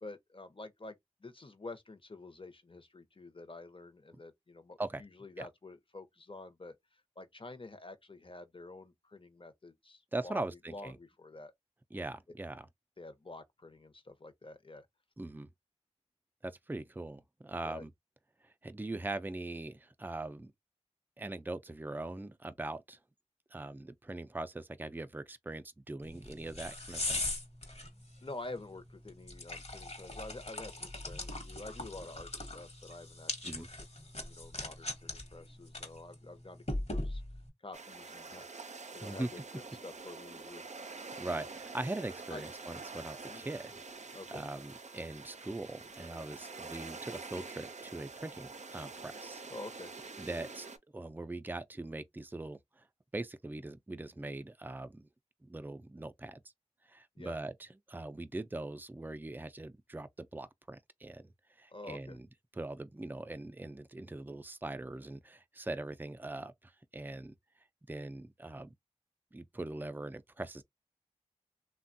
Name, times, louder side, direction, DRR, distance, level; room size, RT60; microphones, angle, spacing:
voice 1, 0.0-11.5 13.0-14.9 17.6-17.9 28.2-33.7 34.2-37.2 37.6-40.6 42.3-42.4 43.2-43.4 44.1-44.4 49.5-49.9 57.1-57.4 61.7-62.2, left 2 dB, 45° left, 0.7 m, -48 dB
voice 2, 10.1-10.9 11.9-12.7 15.2-15.5 16.4-17.9 18.6-20.5 21.2-23.0 23.5-27.2 33.4-33.7 39.0-39.3 41.2-43.7 44.3-49.4 50.2-50.7 50.9-52.6 53.1-55.1 55.4-56.4 56.9-61.3 61.6-62.3 62.6-67.3 67.9-68.7 69.3-70.6, right 2 dB, 15° right, 0.4 m, -41 dB
sound 1, 26.0-37.5, left 2 dB, 65° left, 1.1 m, -41 dB
sound 2, 37.7-50.8, right 4 dB, 80° right, 0.4 m, -47 dB
3.3 x 2.2 x 2.5 m
wide cardioid pair, 50°, 12 cm